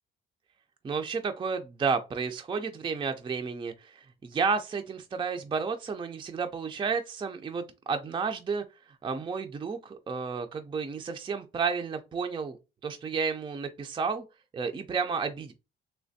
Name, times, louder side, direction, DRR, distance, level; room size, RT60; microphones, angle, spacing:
voice 1, 0.8-8.6 9.0-12.6 12.8-14.2 14.5-15.5, right 5 dB, 25° right, 0.3 m, -31 dB
3.2 x 3.0 x 2.6 m
cardioid pair, 110°, 21 cm